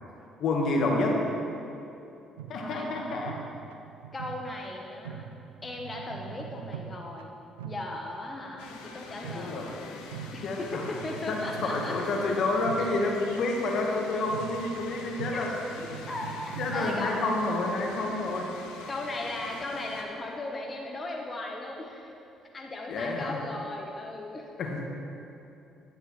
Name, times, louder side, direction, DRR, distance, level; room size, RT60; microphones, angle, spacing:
voice 1, 0.4-1.2 2.5-3.4 9.3-9.7 10.4-10.8 11.3-15.5 16.6-18.5 22.9-23.4 24.6-24.8, left 2 dB, 60° left, 0 dB, 1.3 m, -29 dB
sound 1, 2.4-17.5, right 9 dB, 85° right, 0.3 m, -43 dB
voice 2, 2.5-2.9 4.1-5.3 5.6-7.3 7.6-10.0 10.3-11.9 12.8-12.9 15.3-15.4 16.1-17.2 18.1-18.2 18.5-22.1 22.5-24.5, left 2 dB, 30° left, 0 dB, 1.0 m, -37 dB
sound 2, 8.6-20.0, left 4 dB, 80° left, 0.7 m, -45 dB
10.5 x 9.1 x 3.2 m, 2.7 s
hypercardioid pair, 55°, 0 cm